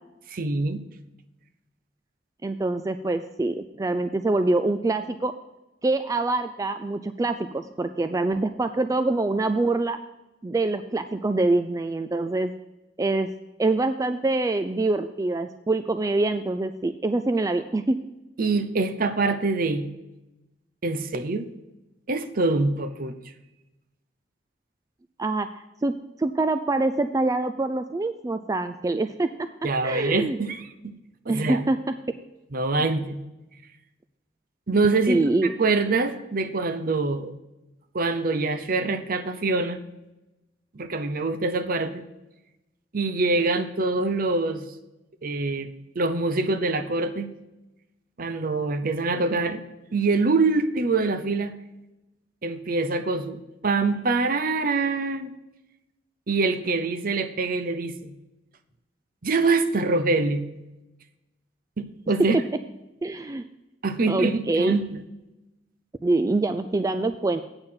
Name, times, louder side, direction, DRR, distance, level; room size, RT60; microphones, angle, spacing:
voice 1, 0.3-0.8 18.4-19.9 20.8-21.5 22.1-23.2 29.6-30.9 31.3-31.6 32.5-33.2 34.7-35.3 35.6-37.3 37.9-39.8 40.7-42.0 42.9-44.7 45.2-45.7 45.9-47.3 48.2-49.6 49.9-51.5 52.4-55.3 56.3-58.1 59.2-60.4 61.8-62.4 63.8-65.0, right 3 dB, 55° right, 11 dB, 0.7 m, -25 dB
voice 2, 2.4-5.3 5.8-10.0 10.4-12.5 13.0-13.3 13.6-18.0 25.2-25.5 25.8-25.9 26.2-29.5 29.8-30.4 31.3-31.9 35.1-35.5 63.0-63.4 64.1-64.8 66.0-67.4, right 2 dB, 20° right, 9 dB, 0.3 m, -25 dB
8.8 x 6.6 x 5.7 m, 1.0 s
head